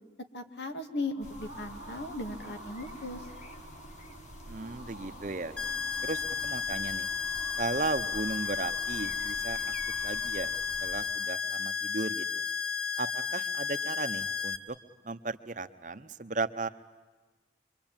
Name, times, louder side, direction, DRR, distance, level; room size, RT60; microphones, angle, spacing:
voice 1, 0.3-3.3, left 2 dB, 80° left, 6 dB, 2.0 m, -37 dB
sound 1, 0.8-11.7, right 1 dB, 65° left, 5.6 m, -50 dB
sound 2, 1.2-11.1, left 1 dB, 40° left, 1.8 m, -50 dB
voice 2, 4.5-5.6 6.0-7.1 7.6-9.7 10.0-10.5 10.8-12.4 13.0-14.8 15.0-16.7, right 3 dB, 45° right, 10 dB, 0.9 m, -35 dB
sound 3, 5.6-14.6, left 6 dB, 5° left, 1.3 m, -33 dB
25.0 x 24.5 x 9.0 m, 1.3 s
head